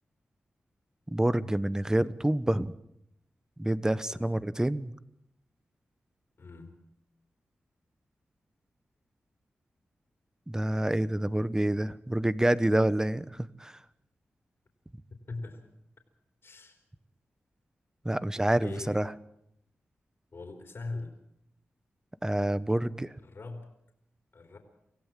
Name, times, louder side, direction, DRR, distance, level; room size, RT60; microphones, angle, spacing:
voice 1, 1.1-2.7 3.6-4.9 10.5-13.8 18.0-19.1 22.2-23.1, right 1 dB, 15° right, 16 dB, 1.0 m, -27 dB
voice 2, 4.1-4.4 6.4-6.8 15.3-15.6 16.4-16.8 18.6-19.0 20.3-21.2 23.2-23.7 24.3-24.6, left 3 dB, 60° left, 3 dB, 3.6 m, -41 dB
25.5 x 16.0 x 7.5 m, 0.79 s
cardioid pair, 65°, 5 cm